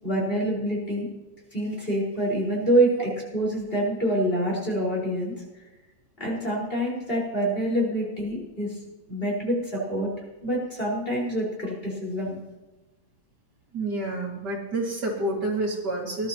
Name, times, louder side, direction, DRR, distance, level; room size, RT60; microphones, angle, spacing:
voice 1, 0.0-1.1 1.5-5.3 6.2-8.8 9.1-10.1 10.4-12.4, right 1 dB, 25° left, -3 dB, 5.1 m, -26 dB
voice 2, 13.7-16.3, right 2 dB, 55° right, -1 dB, 2.8 m, -28 dB
20.0 x 12.0 x 3.0 m, 1.1 s
omnidirectional pair, 2.2 m